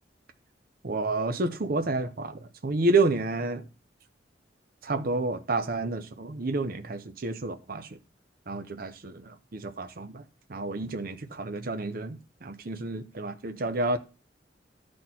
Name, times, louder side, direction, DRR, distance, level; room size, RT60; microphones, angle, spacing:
voice 1, 0.8-3.6 4.8-7.9 8.5-10.2 10.5-14.0, right 2 dB, 55° right, 0.7 m, -30 dB
12.0 x 4.3 x 4.3 m
head